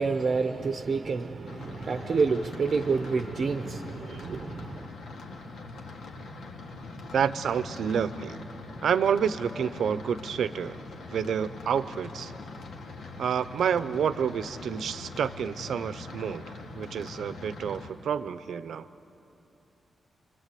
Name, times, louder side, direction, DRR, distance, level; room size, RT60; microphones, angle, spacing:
voice 1, 0.0-4.9, right 4 dB, 40° right, 0.7 m, -28 dB
sound 1, 1.5-17.9, left 3 dB, 85° left, 2.2 m, -43 dB
voice 2, 7.1-8.4 8.8-10.8 11.1-12.3 13.2-18.8, right 7 dB, 80° right, 0.7 m, -29 dB
27.0 x 23.5 x 8.4 m
wide cardioid pair, 180°, 0 cm